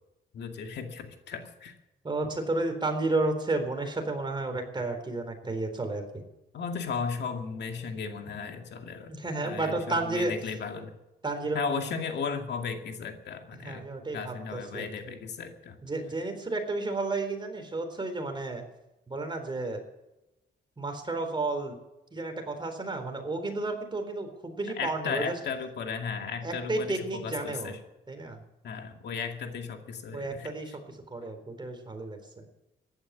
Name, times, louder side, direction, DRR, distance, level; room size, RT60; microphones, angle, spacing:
voice 1, 0.3-1.7 6.5-9.2 9.4-10.9 11.5-13.9 14.1-15.8 24.8-27.8 28.6-30.8, left 5 dB, 70° left, 4 dB, 2.2 m, -35 dB
voice 2, 2.0-6.2 9.1-10.3 11.2-11.8 13.6-14.9 15.8-18.6 19.1-19.8 20.8-21.8 22.1-25.3 26.4-27.8 28.1-28.4 30.1-30.7 31.1-32.4, right 2 dB, 25° right, 5 dB, 4.0 m, -32 dB
15.5 x 11.5 x 8.2 m, 0.97 s
cardioid pair, 90°, 18 cm